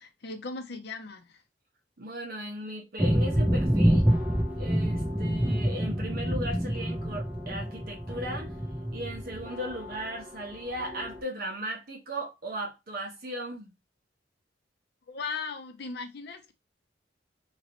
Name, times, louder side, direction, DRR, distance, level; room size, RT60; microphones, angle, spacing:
voice 1, 0.0-1.4 15.1-16.5, left 4 dB, 65° left, 0.6 m, -38 dB
voice 2, 2.0-4.1 4.6-8.5 8.9-13.7, equal, 55° right, 1.1 m, -37 dB
sound 1, 3.0-11.2, equal, 10° right, 0.6 m, -27 dB
3.0 x 2.9 x 2.9 m
head